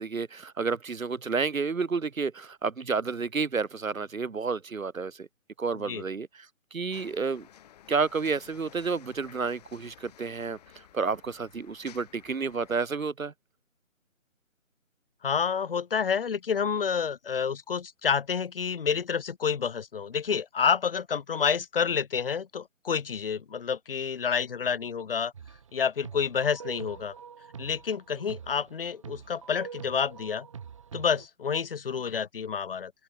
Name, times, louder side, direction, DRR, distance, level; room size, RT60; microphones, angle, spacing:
voice 1, 0.0-5.3 5.6-6.5 6.7-7.5 7.9-10.6 10.9-13.3, right 5 dB, 80° right, 1.8 m, -30 dB
sound 1, 6.9-12.8, left 10 dB, 30° left, 3.8 m, -54 dB
voice 2, 15.2-25.3 25.7-27.1 27.6-30.5 30.9-32.9, left 6 dB, 45° left, 0.5 m, -29 dB
sound 2, 25.3-25.7 26.0-31.3, right 7 dB, 25° right, 0.9 m, -45 dB
open air
figure-of-eight pair, 155°, 40 cm